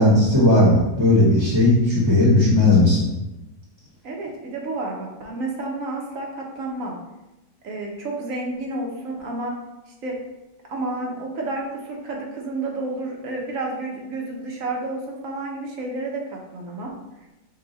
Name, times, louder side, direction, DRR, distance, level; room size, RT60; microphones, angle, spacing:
voice 1, 0.0-3.1, left 1 dB, 20° right, -6 dB, 0.9 m, -16 dB
voice 2, 4.0-7.0 7.6-9.6 10.0-10.2 10.7-17.0, right 2 dB, 65° right, -1 dB, 1.2 m, -30 dB
5.4 x 2.3 x 4.0 m, 0.98 s
omnidirectional pair, 1.6 m